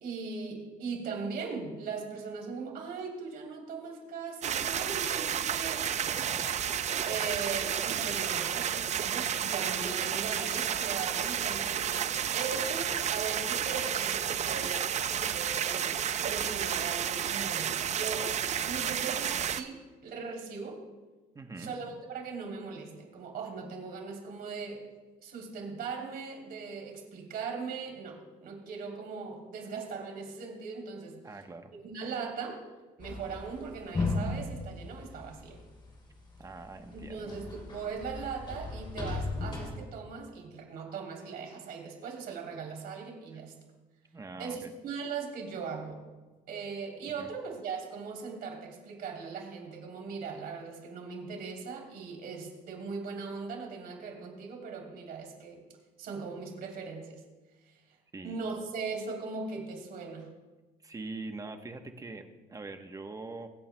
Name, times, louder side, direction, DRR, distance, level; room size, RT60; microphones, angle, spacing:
voice 1, 0.0-5.9 7.0-12.0 12.3-14.8 15.1-18.3 18.6-20.8 21.6-24.8 25.2-31.2 31.8-32.6 33.0-35.6 36.9-43.5 44.4-46.0 46.5-55.6 56.0-57.2 57.7-57.8 58.2-60.3, right 5 dB, 65° right, 0 dB, 3.2 m, -39 dB
sound 1, 4.4-19.6, right 9 dB, 45° right, 0.5 m, -31 dB
voice 2, 6.1-6.5 21.3-21.7 31.2-31.7 36.4-37.4 44.1-44.7 47.2-47.3 58.1-58.7 60.8-63.5, right 3 dB, 20° right, 6 dB, 1.0 m, -43 dB
sound 2, 33.0-36.0 36.4-39.7, left 3 dB, 30° left, 3.3 m, -36 dB
23.5 x 8.7 x 2.2 m, 1.2 s
cardioid pair, 110°, 17 cm